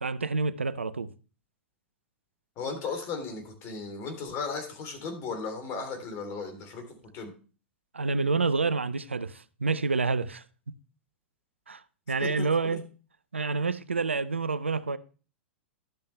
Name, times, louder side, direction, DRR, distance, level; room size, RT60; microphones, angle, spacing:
voice 1, 0.0-1.1 7.9-10.7 11.7-11.8 12.1-12.8 13.3-15.0, right 4 dB, 90° right, 0.5 m, -28 dB
voice 2, 2.6-6.9 7.1-7.3 12.2-12.8, left 4 dB, 40° left, 3.1 m, -36 dB
12.0 x 7.1 x 3.2 m
figure-of-eight pair, 100°, 6 cm